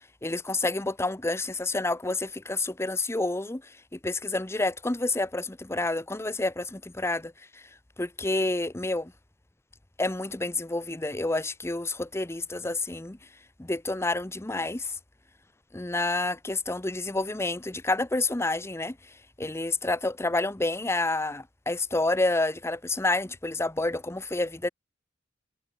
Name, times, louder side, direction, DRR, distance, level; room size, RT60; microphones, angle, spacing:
voice 1, 0.2-7.6 8.0-9.1 10.0-13.2 13.6-15.0 15.7-19.0 19.4-24.7, left 2 dB, 15° left, 0.7 m, -29 dB
head